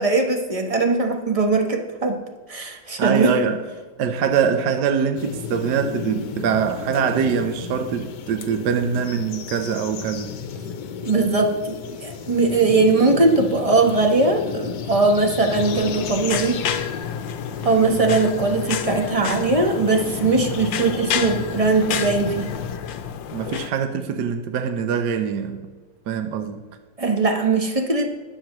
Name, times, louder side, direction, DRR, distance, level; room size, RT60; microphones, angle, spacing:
voice 1, 0.0-2.2 2.5-3.3 11.0-16.8 17.6-22.5 27.0-28.1, right 3 dB, 25° right, 1.0 m, -20 dB
voice 2, 3.0-3.6 4.0-10.3 17.8-18.0 23.3-25.6 26.1-26.6, right 7 dB, 70° right, 1.3 m, -23 dB
sound 1, 5.2-22.8, left 7 dB, 70° left, 1.4 m, -34 dB
sound 2, 15.5-23.7, left 8 dB, 85° left, 1.5 m, -30 dB
21.5 x 7.7 x 3.0 m
omnidirectional pair, 2.0 m